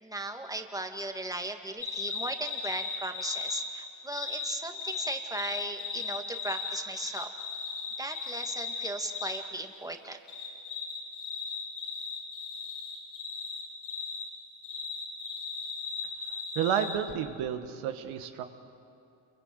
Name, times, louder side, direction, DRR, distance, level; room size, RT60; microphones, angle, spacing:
voice 1, 0.0-7.3 8.0-10.2, right 1 dB, 5° right, 5 dB, 2.2 m, -37 dB
sound 1, 1.8-3.7 4.1-9.4 10.3-14.3 14.6-16.9, left 5 dB, 80° left, 6.4 m, -36 dB
voice 2, 16.5-18.4, right 8 dB, 85° right, 7 dB, 1.6 m, -31 dB
27.5 x 24.0 x 8.0 m, 2.5 s
supercardioid pair, 70°, 48 cm